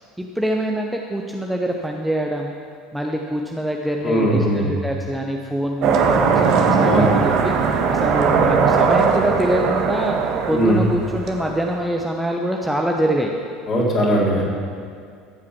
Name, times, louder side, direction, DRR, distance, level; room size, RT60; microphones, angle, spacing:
voice 1, 0.2-2.5 2.9-10.2 10.5-13.3, right 1 dB, 5° right, 0 dB, 1.0 m, -24 dB
voice 2, 4.0-4.7 6.8-7.1 10.5-10.8 13.7-14.4, equal, 35° left, -4 dB, 3.9 m, -19 dB
sound 1, 5.8-11.8, right 5 dB, 50° right, 1.4 m, -19 dB
15.0 x 8.7 x 6.0 m, 2.2 s
figure-of-eight pair, 65°, 0 cm